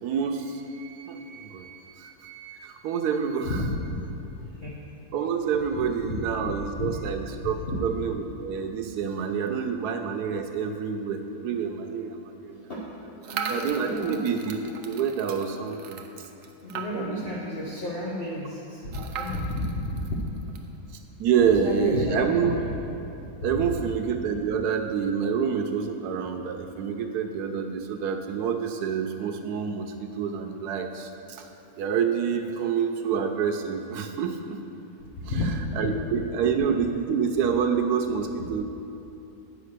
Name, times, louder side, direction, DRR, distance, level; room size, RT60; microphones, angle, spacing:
voice 1, 0.0-3.6 5.1-12.6 13.5-16.0 16.9-17.4 21.2-22.5 23.4-31.5 31.8-34.4 35.3-35.4 35.8-38.6, right 6 dB, 85° right, 5 dB, 1.1 m, -27 dB
voice 2, 3.4-4.1 4.6-4.8 5.7-7.1 7.7-7.8 12.5-12.8 13.2-14.2 16.6-20.7 21.6-22.8 23.4-23.5 35.2-35.9 36.4-36.5, left 1 dB, 45° left, -6 dB, 1.1 m, -32 dB
sound 1, 13.2-17.3 17.7-17.8 18.0-18.1 18.9-20.7, right 5 dB, 65° right, 0.9 m, -37 dB
9.2 x 5.0 x 6.6 m, 2.9 s
omnidirectional pair, 1.6 m